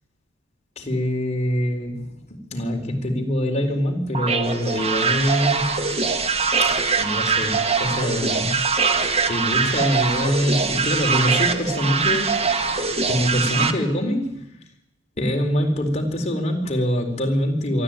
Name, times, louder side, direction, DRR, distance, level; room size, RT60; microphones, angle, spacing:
voice 1, 0.8-5.8 6.6-8.6 9.3-12.4 13.1-14.6 15.2-17.8, equal, 35° left, 2 dB, 4.1 m, -24 dB
sound 1, 4.1-13.7, right 5 dB, 30° right, 1.5 m, -22 dB
23.5 x 14.0 x 9.1 m, 0.90 s
head